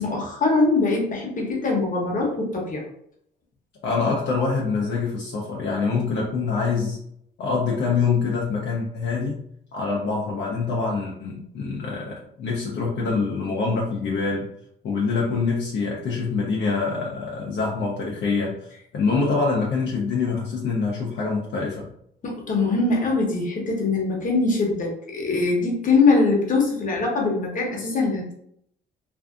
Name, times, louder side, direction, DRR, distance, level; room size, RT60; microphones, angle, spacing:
voice 1, 0.0-2.8 22.2-28.3, left 3 dB, 40° left, -1 dB, 0.9 m, -22 dB
voice 2, 3.8-7.0 7.4-9.4 9.7-14.5 14.8-18.6 18.9-21.9, left 4 dB, 65° left, -3 dB, 0.6 m, -25 dB
2.6 x 2.4 x 2.4 m, 0.70 s
cardioid pair, 90°, 20 cm